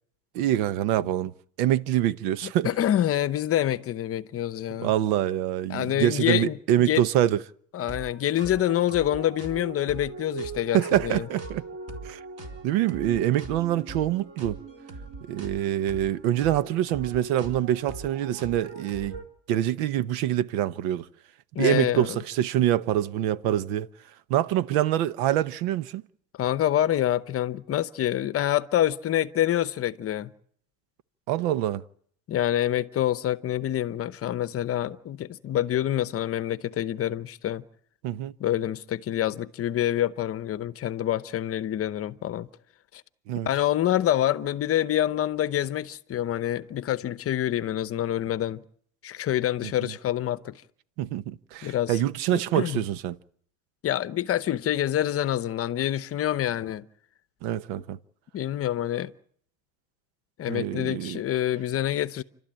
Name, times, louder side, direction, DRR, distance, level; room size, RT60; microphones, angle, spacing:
voice 1, 0.3-1.3 1.6-2.7 4.8-7.4 10.7-11.6 12.0-12.2 12.6-14.6 15.2-19.2 19.5-21.1 21.6-23.9 24.3-26.0 31.3-31.8 38.0-38.3 43.3-43.5 49.8-49.9 51.0-53.2 57.4-58.0 60.5-61.2, right 12 dB, 70° right, 1.0 m, -25 dB
voice 2, 2.4-4.9 5.7-7.0 7.7-11.3 21.5-22.2 26.4-30.3 32.3-37.6 38.4-42.5 42.9-43.0 43.5-48.6 49.0-50.6 51.6-52.0 52.3-52.8 53.8-56.9 58.3-59.1 60.4-62.2, left 12 dB, 35° left, 0.9 m, -26 dB
sound 1, 7.8-19.2, right 3 dB, 35° right, 4.1 m, -40 dB
29.5 x 12.5 x 8.9 m
supercardioid pair, 125°, 41 cm